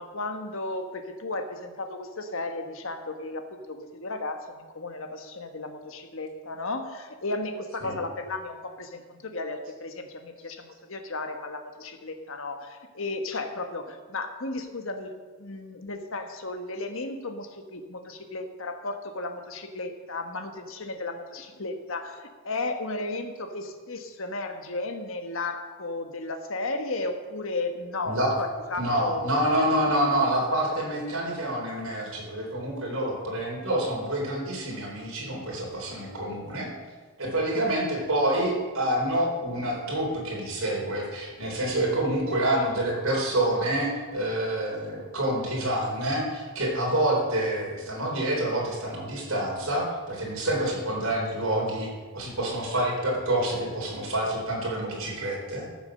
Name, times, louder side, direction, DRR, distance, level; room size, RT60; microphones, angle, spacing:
voice 1, 0.0-29.5, left 2 dB, 65° left, 6 dB, 1.2 m, -34 dB
voice 2, 28.8-36.7 37.2-51.9 52.1-55.7, right 1 dB, 70° right, -2 dB, 4.0 m, -27 dB
14.0 x 7.1 x 6.4 m, 1.4 s
head